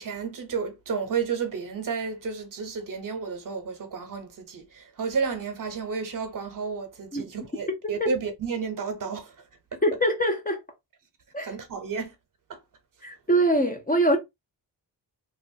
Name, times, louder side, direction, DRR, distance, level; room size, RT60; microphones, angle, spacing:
voice 1, 0.0-9.3 9.7-9.8 11.4-12.1 12.5-12.6, right 5 dB, 50° right, 0.8 m, -32 dB
voice 2, 9.8-10.6 11.3-11.6 13.0-14.2, right 1 dB, 20° left, 0.5 m, -23 dB
2.9 x 2.3 x 2.7 m
wide cardioid pair, 145°, 42 cm